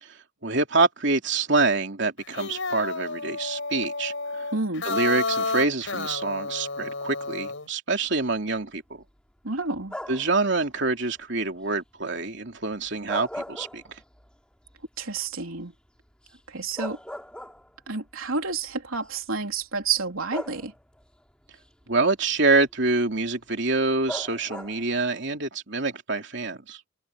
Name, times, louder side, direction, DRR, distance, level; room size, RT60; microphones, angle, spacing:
voice 1, 0.4-4.4 4.8-9.0 10.1-13.8 21.9-26.8, right 3 dB, 55° right, 3.2 m, -26 dB
sound 1, 2.2-7.7, left 3 dB, 65° left, 5.2 m, -31 dB
voice 2, 4.5-4.8 9.4-10.0 15.0-15.7 16.5-17.0 17.9-20.7, right 4 dB, 80° right, 3.5 m, -29 dB
sound 2, 9.9-10.4 12.9-14.3 14.7-14.8 16.3-16.4 16.8-17.9 18.9-19.1 20.3-21.0 24.1-24.9, left 1 dB, 5° left, 3.0 m, -37 dB
head